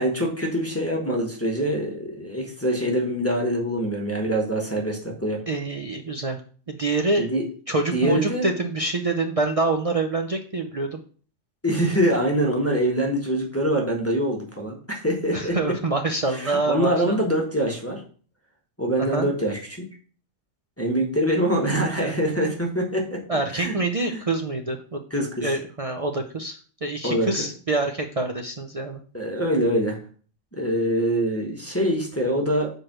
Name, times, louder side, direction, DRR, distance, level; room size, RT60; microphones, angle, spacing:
voice 1, 0.0-5.4 7.2-7.4 7.9-8.5 11.6-15.6 16.3-18.0 18.8-19.9 20.8-23.2 23.5-23.8 24.1-24.2 25.1-25.5 27.0-27.5 29.1-30.0 30.5-32.7, equal, 10° left, -1 dB, 1.1 m, -24 dB
voice 2, 5.5-6.4 6.7-7.3 7.7-11.0 15.3-17.2 19.0-19.3 22.0-22.2 23.3-25.0 25.4-29.0, right 2 dB, 50° right, 3 dB, 0.4 m, -26 dB
4.8 x 4.5 x 5.9 m, 0.43 s
omnidirectional pair, 1.4 m